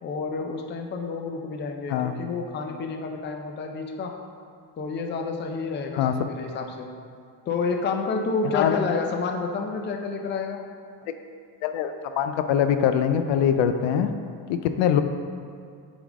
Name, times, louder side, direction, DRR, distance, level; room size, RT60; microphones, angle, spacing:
voice 1, 0.0-4.2 4.8-6.9 7.5-10.6, left 4 dB, 25° left, 3 dB, 0.4 m, -29 dB
voice 2, 6.0-6.3 8.5-8.8 11.6-14.1 14.5-15.0, left 9 dB, 85° left, 8 dB, 0.5 m, -23 dB
8.3 x 3.6 x 3.6 m, 2.3 s
cardioid pair, 140°, 43 cm